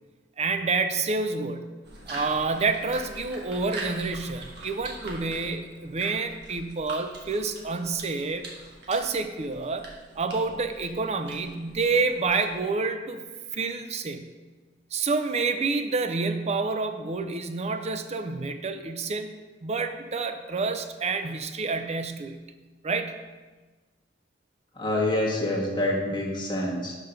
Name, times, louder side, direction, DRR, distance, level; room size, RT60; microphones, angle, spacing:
voice 1, 0.4-1.8 2.1-8.5 8.9-9.9 10.2-13.2 13.5-14.3 14.9-19.3 19.6-22.4 22.8-23.2, right 4 dB, 35° right, 8 dB, 0.5 m, -28 dB
sound 1, 1.8-12.7, right 2 dB, 60° right, 1.4 m, -43 dB
voice 2, 24.8-26.9, left 1 dB, 25° left, -3 dB, 1.3 m, -26 dB
5.6 x 5.2 x 5.7 m, 1.3 s
head